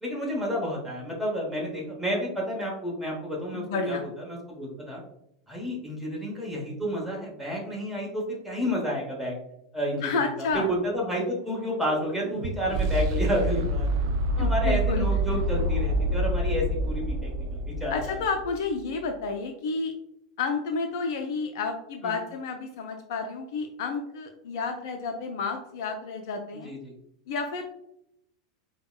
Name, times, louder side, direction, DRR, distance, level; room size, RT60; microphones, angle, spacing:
voice 1, 0.0-4.0 4.3-5.0 5.5-9.3 9.7-13.9 14.4-18.2 22.0-22.2 26.5-26.9, equal, 5° right, -3 dB, 1.1 m, -30 dB
voice 2, 3.5-4.1 10.0-10.7 14.4-15.1 17.9-19.9 20.4-26.7 27.3-27.6, left 4 dB, 55° left, 4 dB, 0.4 m, -30 dB
sound 1, 10.5-18.6, right 1 dB, 55° right, 0.3 m, -28 dB
5.1 x 2.1 x 2.3 m, 0.77 s
figure-of-eight pair, 85°, 2 cm